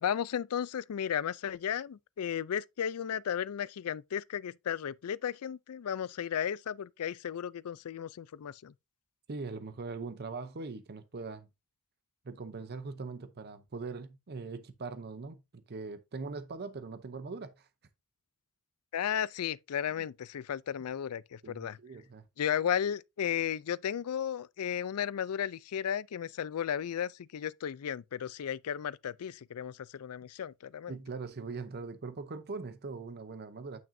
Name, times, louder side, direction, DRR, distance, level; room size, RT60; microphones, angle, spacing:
voice 1, 0.0-8.7 18.9-21.8 22.4-31.0, left 9 dB, 75° left, 0.4 m, -34 dB
voice 2, 9.3-11.5 12.2-17.7 21.4-22.3 30.9-33.8, right 4 dB, 45° right, 0.7 m, -41 dB
9.1 x 5.9 x 2.6 m
head